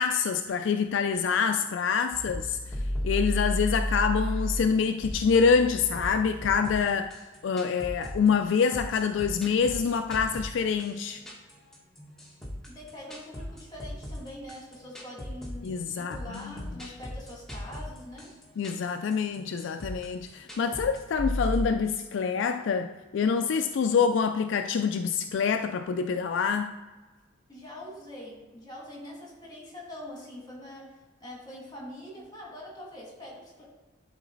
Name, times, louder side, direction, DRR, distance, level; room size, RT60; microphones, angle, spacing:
voice 1, 0.0-2.6 3.0-7.1 7.4-11.2 15.6-16.5 18.6-26.7, left 6 dB, 65° left, 8 dB, 0.3 m, -26 dB
sound 1, 2.1-21.6, equal, 5° left, 1.4 m, -35 dB
voice 2, 12.6-18.3 27.5-33.6, left 1 dB, 20° left, -3 dB, 2.3 m, -44 dB
11.5 x 4.0 x 3.9 m, 1.3 s
head